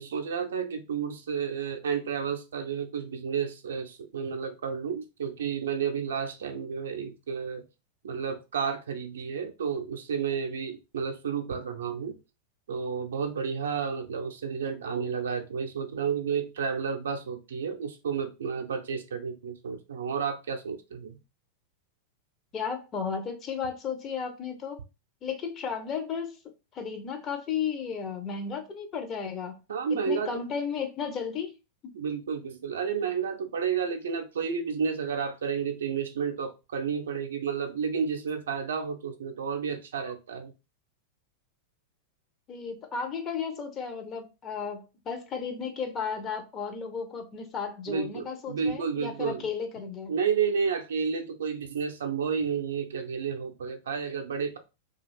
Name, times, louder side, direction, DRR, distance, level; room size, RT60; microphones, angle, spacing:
voice 1, 0.0-7.6 8.0-12.2 12.7-21.2 29.7-30.3 31.9-40.5 47.9-49.5 50.1-54.6, right 6 dB, 65° right, 0.5 m, -31 dB
voice 2, 22.5-24.8 25.2-26.4 26.7-29.6 29.9-31.5 42.5-50.1, left 6 dB, 30° left, 0.6 m, -34 dB
2.4 x 2.3 x 3.2 m
figure-of-eight pair, 90°, 0 cm